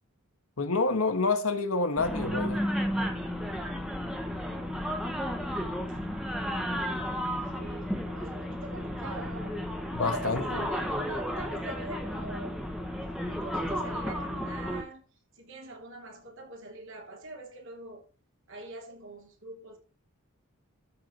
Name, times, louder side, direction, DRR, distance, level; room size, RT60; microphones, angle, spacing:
voice 1, 0.6-2.6 9.9-10.6, left 3 dB, 65° left, 1.4 m, -28 dB
sound 1, 2.0-14.8, equal, ahead, 1.3 m, -33 dB
voice 2, 6.9-9.6 10.0-12.6 13.2-15.0 15.3-18.0 18.5-19.8, right 2 dB, 55° right, 3.2 m, -44 dB
13.0 x 4.7 x 5.2 m
head